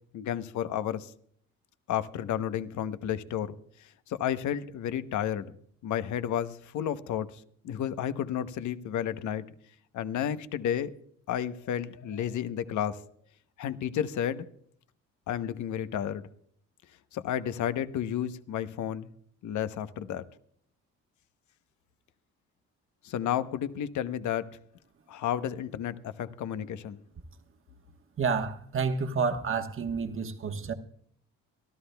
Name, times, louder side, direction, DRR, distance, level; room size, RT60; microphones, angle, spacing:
voice 1, 0.1-1.1 1.9-5.5 5.8-9.5 9.9-10.9 11.3-13.0 13.6-14.5 15.3-16.2 17.1-19.1 19.4-20.3 23.0-24.5 25.1-27.0, left 10 dB, 75° left, 0.9 m, -32 dB
voice 2, 28.2-30.7, right 5 dB, 45° right, 1.3 m, -29 dB
24.5 x 13.5 x 2.3 m
cardioid pair, 90°, 30 cm